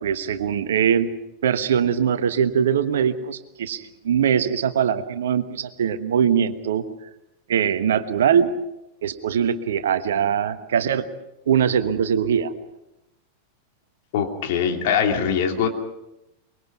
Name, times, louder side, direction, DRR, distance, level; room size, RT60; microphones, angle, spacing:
voice 1, 0.0-1.1 1.4-6.8 7.5-8.5 9.0-11.0 11.5-12.5, right 8 dB, 60° right, 11 dB, 1.3 m, -22 dB
voice 2, 14.1-15.7, left 7 dB, 50° left, 4 dB, 2.9 m, -22 dB
24.5 x 22.5 x 6.0 m, 0.91 s
figure-of-eight pair, 90°, 0 cm